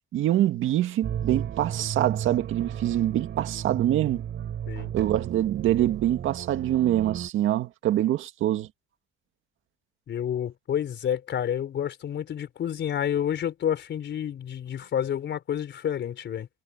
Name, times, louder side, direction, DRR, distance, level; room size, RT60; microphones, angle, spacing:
voice 1, 0.0-4.2 4.9-8.7, right 12 dB, 85° right, 1.9 m, -25 dB
sound 1, 1.0-7.3, right 9 dB, 65° right, 7.4 m, -34 dB
voice 2, 10.1-16.5, left 9 dB, 65° left, 4.0 m, -29 dB
cardioid pair, 90°, 20 cm